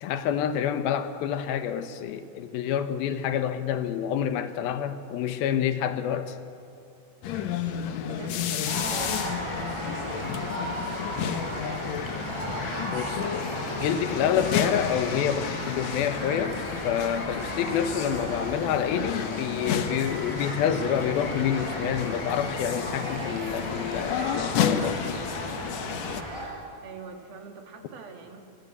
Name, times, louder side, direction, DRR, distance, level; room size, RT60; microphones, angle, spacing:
voice 1, 0.0-6.4 12.9-25.1, left 9 dB, 85° left, 9 dB, 3.1 m, -28 dB
sound 1, 7.2-26.2, left 8 dB, 60° left, 2.1 m, -32 dB
voice 2, 8.0-13.1 26.8-28.4, right 5 dB, 80° right, 3 dB, 4.4 m, -45 dB
sound 2, 8.6-26.5, right 1 dB, 5° right, 6.8 m, -35 dB
26.5 x 25.0 x 8.3 m, 2.6 s
omnidirectional pair, 4.2 m